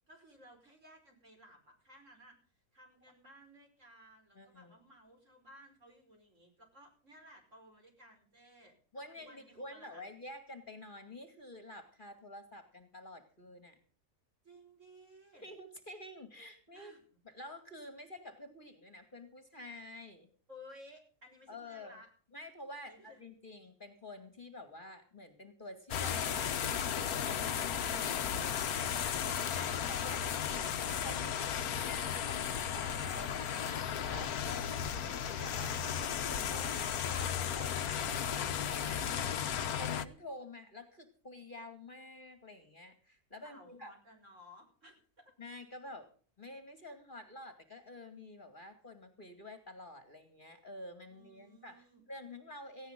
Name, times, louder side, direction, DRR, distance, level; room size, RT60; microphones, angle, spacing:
voice 1, 0.1-2.4 2.7-8.8 9.2-10.0 14.4-15.4 16.7-17.0 20.5-22.1 22.8-23.2 43.4-45.2 51.1-52.0, equal, 50° right, 4 dB, 5.5 m, -58 dB
voice 2, 4.3-4.8 8.9-13.8 15.4-16.9 17.2-20.3 21.5-22.0 22.3-30.7 31.0-31.5 31.8-43.9 45.4-46.1 46.4-52.9, left 1 dB, 35° left, 8 dB, 2.5 m, -49 dB
sound 1, 25.9-40.1, left 8 dB, 75° left, 1.5 m, -35 dB
17.5 x 16.0 x 3.8 m, 0.41 s
omnidirectional pair, 1.6 m